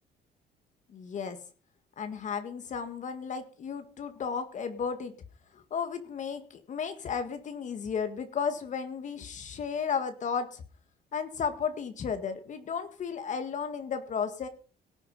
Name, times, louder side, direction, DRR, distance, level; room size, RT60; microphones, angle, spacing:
voice 1, 0.9-1.4 2.0-5.1 5.5-10.6 11.1-14.5, left 6 dB, 45° left, 8 dB, 1.9 m, -34 dB
18.0 x 8.4 x 5.5 m, 0.37 s
cardioid pair, 110°, 17 cm